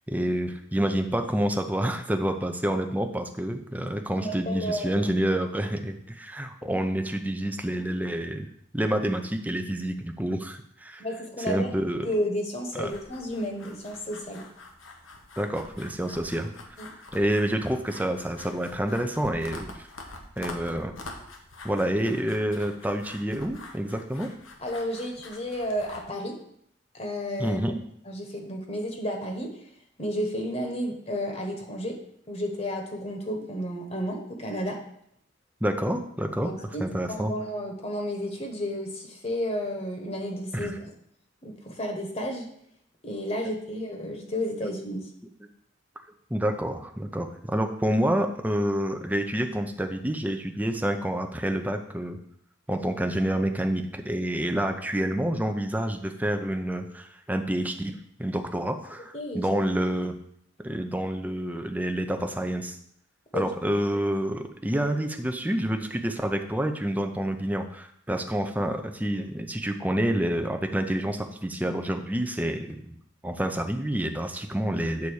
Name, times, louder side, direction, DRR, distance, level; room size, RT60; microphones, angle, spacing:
voice 1, 0.1-8.5 8.7-11.1 11.5-12.1 12.7-12.9 15.4-16.5 17.1-19.9 20.4-20.9 21.6-24.3 27.4-27.8 35.6-36.5 36.8-37.3 40.5-40.8 46.3-52.2 52.7-60.2 60.6-62.8 63.3-72.9 73.2-75.1, right 1 dB, 10° right, 5 dB, 0.6 m, -28 dB
voice 2, 4.2-5.0 6.6-6.7 11.0-11.7 12.0-14.4 16.8-16.9 24.6-26.4 26.9-27.6 28.0-29.7 30.0-32.0 32.3-34.8 36.4-40.9 41.4-42.5 43.0-45.1 59.1-59.6 63.3-63.5, equal, 30° left, 3 dB, 1.3 m, -32 dB
sound 1, 12.8-26.0, left 2 dB, 80° left, 1.3 m, -45 dB
8.4 x 4.1 x 6.4 m, 0.68 s
head